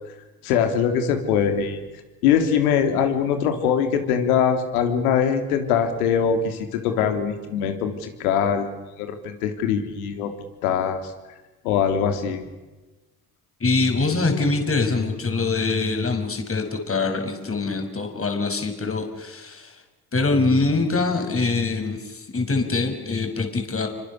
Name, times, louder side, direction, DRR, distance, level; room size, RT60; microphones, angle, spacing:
voice 1, 0.4-1.8 2.2-8.7 9.0-10.3 10.6-11.0 11.6-12.4, left 7 dB, 80° left, 6 dB, 3.5 m, -22 dB
voice 2, 13.6-19.8 20.1-23.9, left 3 dB, 30° left, 5 dB, 6.4 m, -24 dB
29.5 x 25.5 x 6.8 m, 1.2 s
hypercardioid pair, 55°, 44 cm